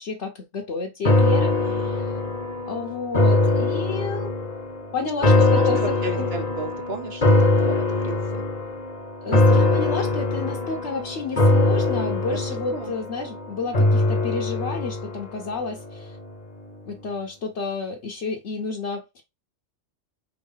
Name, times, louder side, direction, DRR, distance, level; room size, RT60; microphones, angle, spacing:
voice 1, 0.0-2.2 2.7-4.3 4.9-5.8 6.2-6.3 9.2-16.2 16.9-19.2, left 4 dB, 65° left, 1.3 m, -31 dB
sound 1, 1.0-16.3 16.7-16.8, left 2 dB, 35° left, 1.1 m, -22 dB
voice 2, 5.5-8.4 9.3-9.7 12.3-12.4 12.7-12.9, right 3 dB, 55° right, 1.4 m, -34 dB
4.4 x 4.0 x 5.4 m
omnidirectional pair, 1.3 m